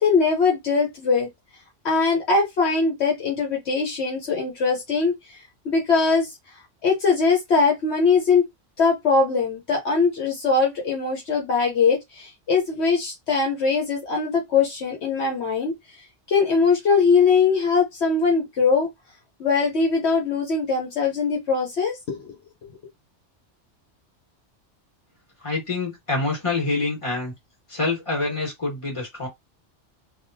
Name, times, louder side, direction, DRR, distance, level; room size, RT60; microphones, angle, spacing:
voice 1, 0.0-1.3 1.8-5.4 5.6-6.3 6.8-8.5 8.8-15.7 16.3-18.9 19.4-22.3, left 4 dB, 65° left, 1.2 m, -21 dB
voice 2, 25.4-27.3 27.7-29.3, left 3 dB, 25° left, 1.7 m, -26 dB
3.5 x 2.5 x 2.7 m
omnidirectional pair, 1.2 m